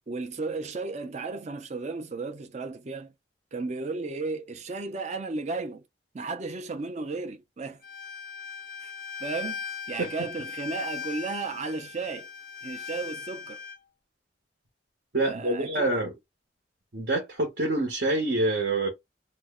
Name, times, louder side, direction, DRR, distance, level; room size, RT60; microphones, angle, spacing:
voice 1, 0.1-3.1 3.5-5.8 6.1-7.8 8.8-8.9 9.2-9.6 9.9-12.3 12.6-13.6 15.2-16.0, right 3 dB, 40° right, 0.5 m, -34 dB
Bowed string instrument, 7.8-13.8, left 6 dB, 50° left, 0.4 m, -39 dB
voice 2, 15.1-16.1 16.9-18.9, right 2 dB, 60° right, 0.9 m, -26 dB
2.5 x 2.1 x 3.6 m
head